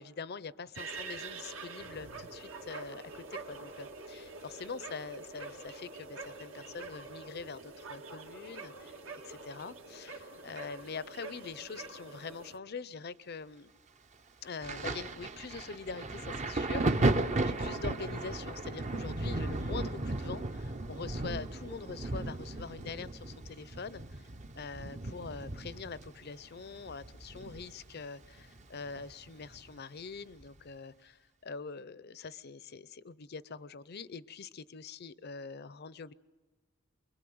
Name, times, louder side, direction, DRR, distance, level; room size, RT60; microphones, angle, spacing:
voice 1, 0.0-9.0 9.2-13.7 14.4-24.3 24.5-36.1, left 5 dB, 50° left, 0.7 m, -44 dB
sound 1, 0.7-12.6, right 3 dB, 75° right, 1.9 m, -46 dB
Thunder, 14.6-28.0 28.2-29.6 30.4-30.6, right 2 dB, 35° right, 0.8 m, -35 dB
24.5 x 22.5 x 7.8 m
head